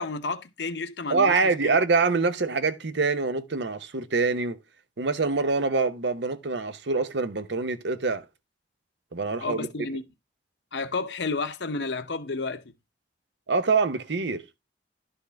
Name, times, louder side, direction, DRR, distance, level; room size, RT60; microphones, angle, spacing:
voice 1, 0.0-1.8 9.4-10.0 10.7-12.7, left 3 dB, 70° left, 0.9 m, -31 dB
voice 2, 1.1-4.6 5.0-8.2 9.1-9.7 13.5-14.4, right 4 dB, 75° right, 0.8 m, -25 dB
11.5 x 5.4 x 3.5 m
head